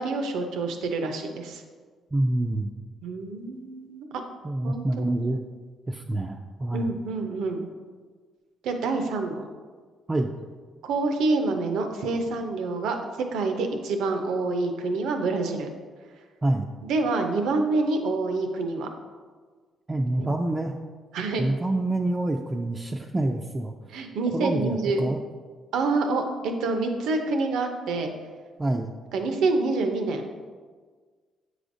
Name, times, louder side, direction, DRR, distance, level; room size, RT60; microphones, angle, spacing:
voice 1, 0.0-1.6 3.0-4.2 4.6-5.3 6.7-7.7 8.6-9.5 10.8-13.0 13.3-15.7 16.8-18.9 20.2-20.3 21.1-21.4 23.9-25.1 25.7-28.1 29.1-30.3, right 3 dB, 85° right, 5 dB, 0.6 m, -27 dB
voice 2, 2.1-2.7 4.4-5.4 5.9-6.9 10.1-10.3 16.4-16.7 19.9-20.8 21.4-23.7 24.3-25.2 28.6-28.9, right 2 dB, 25° right, 1 dB, 0.4 m, -27 dB
7.6 x 4.9 x 2.6 m, 1.5 s
cardioid pair, 90°, 0 cm